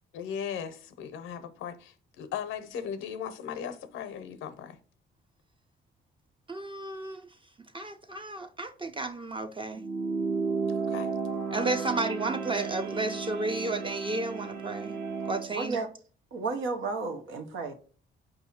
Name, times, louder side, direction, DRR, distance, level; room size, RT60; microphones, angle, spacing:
voice 1, 0.1-4.8 10.9-11.1, left 8 dB, 90° left, 0.6 m, -37 dB
voice 2, 6.5-7.2 7.7-9.8 11.5-15.0 15.2-15.8, right 3 dB, 25° right, 0.5 m, -32 dB
sound 1, 9.8-15.5, right 4 dB, 60° right, 1.1 m, -33 dB
voice 3, 15.5-15.9 16.3-17.7, right 4 dB, 90° right, 0.8 m, -32 dB
4.7 x 2.7 x 4.1 m
cardioid pair, 90°, 20 cm